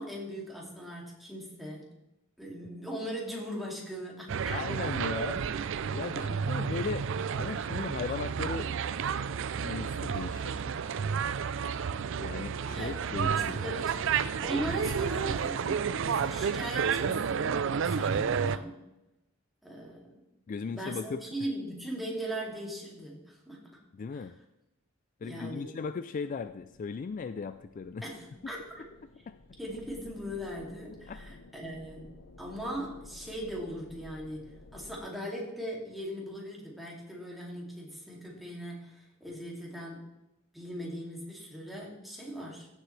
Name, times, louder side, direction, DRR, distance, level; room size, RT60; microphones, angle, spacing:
voice 1, 0.0-1.9 2.4-4.6 6.1-6.3 12.6-14.0 14.4-17.5 17.8-18.8 19.6-20.2 20.7-23.6 24.1-24.2 25.2-25.7 28.0-28.6 29.6-32.1 32.4-40.1 40.5-42.7, equal, ahead, -3 dB, 2.6 m, -39 dB
sound 1, 4.3-18.6, right 6 dB, 65° right, 0.4 m, -31 dB
voice 2, 4.5-5.4 5.9-7.1 7.4-8.7 9.6-10.8 12.2-13.8 20.5-21.3 23.9-24.3 25.2-28.1 29.3-29.4 31.1-31.2, left 5 dB, 40° left, 11 dB, 0.3 m, -37 dB
sound 2, 26.3-35.0, left 2 dB, 80° left, 0.9 m, -53 dB
15.0 x 7.5 x 3.3 m, 0.91 s
head